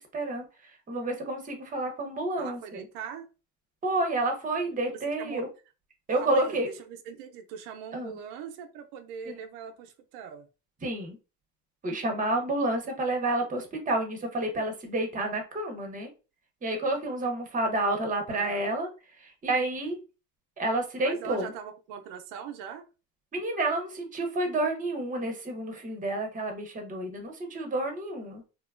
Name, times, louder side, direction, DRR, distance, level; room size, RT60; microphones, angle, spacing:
voice 1, 0.1-2.8 3.8-5.5 6.1-6.7 7.9-8.2 9.3-9.4 10.8-11.2 11.8-16.1 16.6-18.9 19.2-20.0 20.6-21.5 23.3-28.5, right 2 dB, 20° right, 0.7 m, -30 dB
voice 2, 2.4-3.3 5.2-5.4 6.2-10.5 18.3-18.6 21.0-22.9, right 8 dB, 85° right, 0.5 m, -41 dB
2.9 x 2.1 x 2.3 m
supercardioid pair, 105°, 42 cm